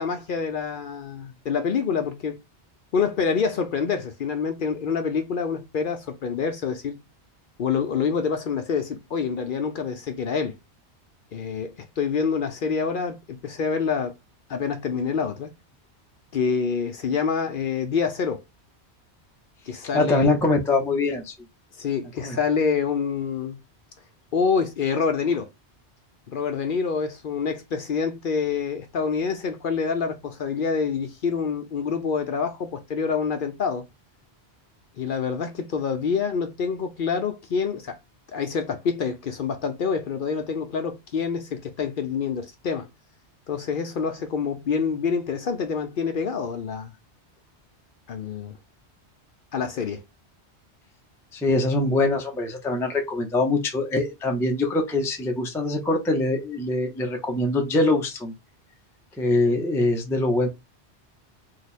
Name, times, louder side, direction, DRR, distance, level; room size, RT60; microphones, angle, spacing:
voice 1, 0.0-2.4 2.9-6.9 7.6-10.5 11.3-14.1 14.5-15.5 16.3-18.4 19.7-20.3 21.8-23.6 24.3-25.5 26.3-33.8 35.0-38.0 38.3-42.9 43.5-46.9 48.1-48.6 49.5-50.0, left 6 dB, 60° left, 0.7 m, -26 dB
voice 2, 19.9-21.3 22.2-22.4 51.3-58.3 59.2-60.5, left 2 dB, 5° left, 0.4 m, -23 dB
2.8 x 2.3 x 4.1 m
omnidirectional pair, 1.1 m